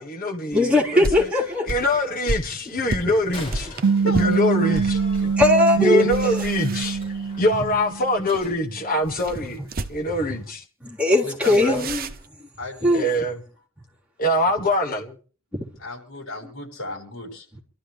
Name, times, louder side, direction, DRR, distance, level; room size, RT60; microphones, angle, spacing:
voice 1, 0.0-1.3 1.7-3.7 4.1-5.3 5.8-7.0 7.4-9.6 9.9-10.6 11.5-11.8 12.9-13.4 14.2-15.2, left 1 dB, 45° left, 1.9 m, -24 dB
voice 2, 0.5-1.8 2.8-3.2 3.7-4.1 5.4-6.4 9.6-9.7 10.8-12.5 12.8-13.1 15.5-15.7, left 1 dB, 5° right, 4.0 m, -21 dB
sound 1, 0.5-5.0 5.4-5.6 6.0-7.5 9.0-10.2 11.4-12.3, right 2 dB, 45° right, 1.1 m, -32 dB
Slam, 3.2-8.6, left 1 dB, 30° left, 5.8 m, -42 dB
sound 2, 3.8-8.5, right 5 dB, 90° right, 0.6 m, -24 dB
voice 3, 4.0-5.4 6.0-6.1 7.1-7.3 11.2-11.9 12.6-13.1 15.8-17.6, left 1 dB, 70° left, 7.3 m, -35 dB
28.0 x 12.5 x 3.3 m
head